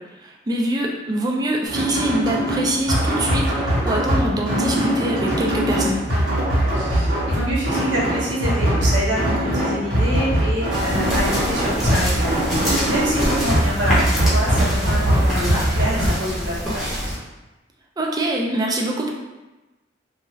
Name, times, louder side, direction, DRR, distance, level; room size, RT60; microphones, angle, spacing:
voice 1, 0.2-6.0 18.0-19.1, right 1 dB, 20° right, -1 dB, 0.4 m, -24 dB
sound 1, 1.6-16.1, equal, 85° right, 1.2 m, -21 dB
voice 2, 6.7-12.5 12.8-17.0, equal, 65° right, -6 dB, 0.8 m, -26 dB
sound 2, 10.7-17.2, equal, ahead, 0.8 m, -26 dB
2.6 x 2.4 x 3.0 m, 1.1 s
head